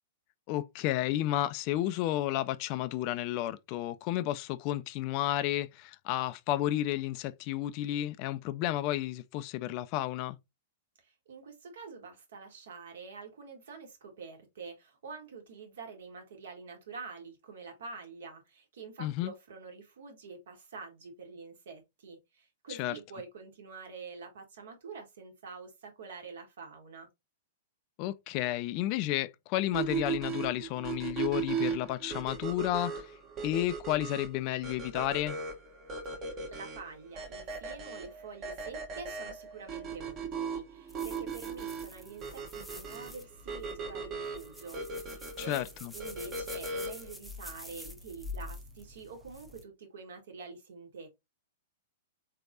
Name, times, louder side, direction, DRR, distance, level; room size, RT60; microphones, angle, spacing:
voice 1, 0.5-10.4 19.0-19.3 22.8-22.9 28.0-33.1 33.4-35.4 45.4-45.9, left 14 dB, 40° left, 0.3 m, -32 dB
voice 2, 11.0-27.1 36.2-45.6 45.9-51.1, right 4 dB, 65° right, 1.5 m, -47 dB
sound 1, 29.7-47.1, right 5 dB, 30° right, 1.0 m, -38 dB
sound 2, 40.9-49.6, left 2 dB, ahead, 0.7 m, -47 dB
3.8 x 3.4 x 2.6 m
figure-of-eight pair, 105°, 0 cm